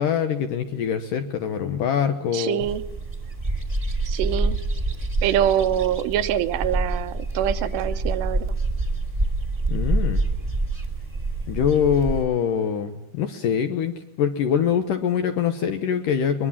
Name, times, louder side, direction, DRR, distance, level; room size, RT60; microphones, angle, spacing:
voice 1, 0.0-2.6 9.7-10.2 11.5-16.5, left 8 dB, 70° left, 8 dB, 2.1 m, -24 dB
voice 2, 2.3-2.8 4.1-4.6 5.2-8.5, right 10 dB, 80° right, 10 dB, 3.0 m, -24 dB
sound 1, 2.6-12.2, right 2 dB, 10° right, 1.7 m, -26 dB
22.5 x 21.5 x 7.4 m, 0.90 s
omnidirectional pair, 5.0 m